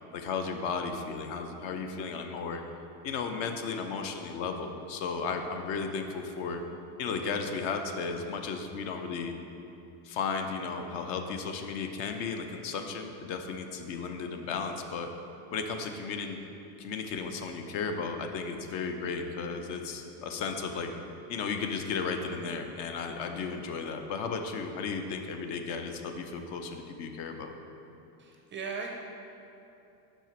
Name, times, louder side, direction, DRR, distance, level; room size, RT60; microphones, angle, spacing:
voice 1, 0.1-2.6 3.0-6.6 7.0-9.3 10.0-15.1 15.5-16.4 16.8-20.9 21.3-27.5, left 5 dB, 60° left, 5 dB, 0.7 m, -34 dB
voice 2, 28.2-28.9, right 5 dB, 25° right, 1 dB, 0.4 m, -37 dB
5.9 x 4.5 x 4.4 m, 2.8 s
supercardioid pair, 105°, 50 cm